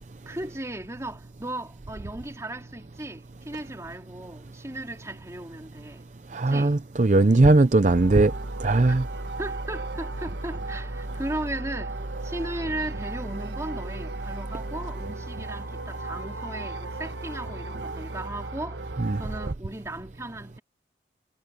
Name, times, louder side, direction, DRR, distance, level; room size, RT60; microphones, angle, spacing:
voice 1, 0.2-6.1 6.5-6.8 8.9-9.0 9.4-18.8 19.2-20.6, right 1 dB, 15° right, 2.9 m, -36 dB
voice 2, 6.3-8.3 8.6-9.0 19.0-19.2, right 2 dB, 45° right, 0.6 m, -19 dB
sound 1, 7.9-19.5, right 2 dB, 75° right, 1.3 m, -35 dB
head